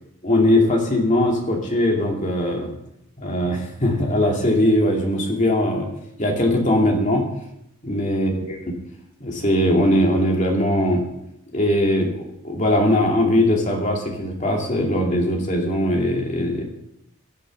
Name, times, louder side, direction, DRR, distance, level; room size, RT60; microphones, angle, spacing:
voice 1, 0.2-2.7 3.2-5.9 6.2-7.2 7.8-8.5 9.2-11.0 11.5-16.6, left 1 dB, 35° left, 0 dB, 2.5 m, -20 dB
11.5 x 7.7 x 7.1 m, 0.80 s
head